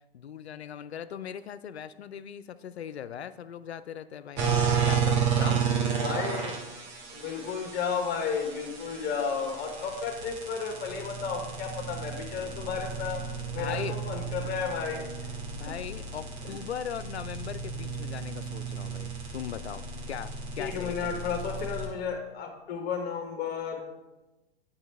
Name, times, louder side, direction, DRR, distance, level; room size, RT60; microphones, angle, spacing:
voice 1, 0.1-4.4 4.8-5.7 13.6-14.0 15.5-21.4, left 8 dB, 85° left, 14 dB, 0.5 m, -39 dB
sound 1, 4.4-21.9, right 6 dB, 35° right, 1.5 m, -32 dB
voice 2, 6.0-6.6 7.1-13.2 13.5-15.1 16.4-16.5 20.6-23.8, left 6 dB, 30° left, 4 dB, 1.3 m, -33 dB
8.7 x 5.6 x 3.3 m, 1.1 s
figure-of-eight pair, 100°, 31 cm